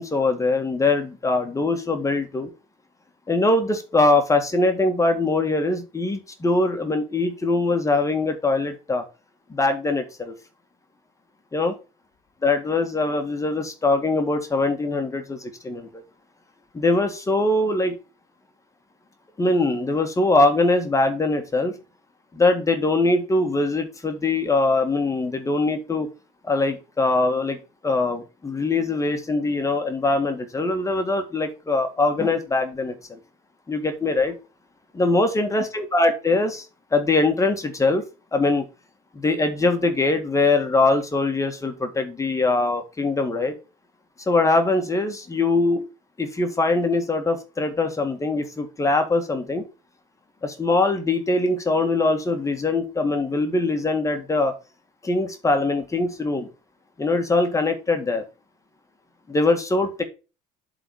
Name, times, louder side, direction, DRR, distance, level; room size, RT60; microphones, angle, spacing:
voice 1, 0.0-2.5 3.3-9.0 9.5-10.3 11.5-11.7 12.4-16.0 16.7-18.0 19.4-21.7 22.3-26.1 26.4-27.6 27.8-33.2 33.7-34.3 34.9-36.6 36.9-38.0 38.3-38.7 39.1-43.5 44.2-45.8 46.2-49.6 50.4-54.5 55.0-56.5 57.0-58.2 59.3-60.0, left 2 dB, 15° left, 6 dB, 1.7 m, -22 dB
7.6 x 4.1 x 6.3 m, 0.31 s
supercardioid pair, 95°, 18 cm